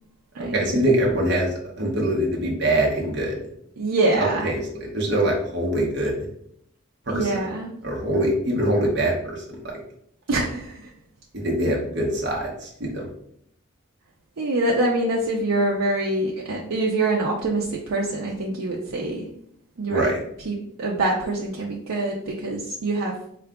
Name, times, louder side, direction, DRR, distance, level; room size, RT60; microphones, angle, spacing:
voice 1, 0.4-3.4 4.2-6.3 7.1-7.3 7.8-9.7 11.3-13.1 19.9-20.2, right 1 dB, 50° right, -2 dB, 0.8 m, -24 dB
voice 2, 3.8-4.5 7.1-7.8 10.3-10.9 14.4-19.3 19.8-20.1 20.5-23.1, right 2 dB, 85° right, -2 dB, 0.5 m, -25 dB
3.7 x 2.3 x 3.5 m, 0.71 s
head